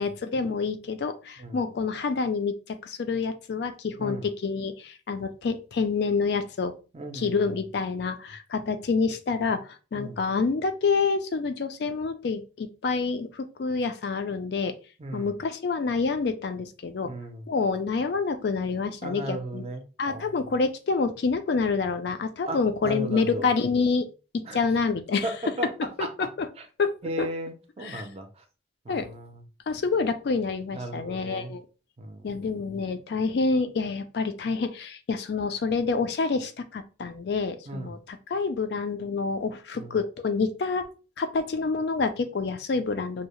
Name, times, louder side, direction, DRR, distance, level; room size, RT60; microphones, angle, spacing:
voice 1, 0.0-6.7 7.1-14.7 15.1-17.2 17.5-19.7 20.0-24.1 24.3-25.2 26.2-26.3 26.8-26.9 27.2-27.3 27.8-28.0 28.9-29.1 29.7-31.6 32.2-40.8 41.2-43.3, left 4 dB, 60° left, 0.4 m, -27 dB
voice 2, 6.9-7.5 9.9-10.2 15.0-15.4 17.0-17.5 19.0-20.4 22.5-23.5 24.5-24.6 25.2-26.3 26.6-26.7 27.0-28.4 28.8-29.4 30.7-31.6 32.0-32.5 37.7-38.0 39.7-40.0, right 1 dB, 35° right, 0.4 m, -36 dB
2.7 x 2.0 x 2.9 m
head